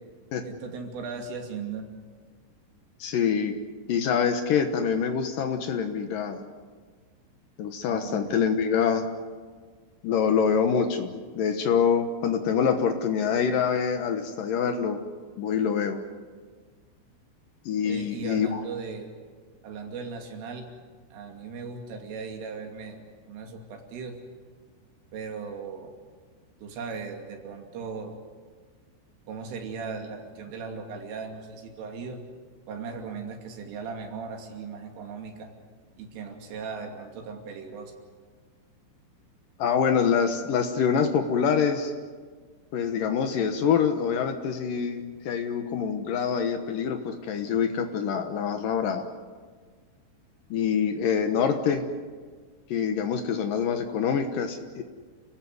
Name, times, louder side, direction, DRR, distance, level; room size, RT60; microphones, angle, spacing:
voice 1, 0.4-1.9 7.9-8.3 17.8-19.1 19.6-20.7 21.1-24.2 25.1-25.9 26.6-28.2 29.3-32.2 32.7-35.5 36.0-37.9, right 5 dB, 75° right, 3 dB, 5.1 m, -38 dB
voice 2, 3.0-3.6 3.9-6.5 7.6-9.0 10.0-15.0 15.4-16.0 17.7-18.6 39.6-41.9 42.7-49.1 50.5-51.9 52.7-54.8, left 7 dB, 80° left, 6 dB, 1.9 m, -25 dB
29.5 x 16.0 x 9.6 m, 1.5 s
omnidirectional pair, 5.9 m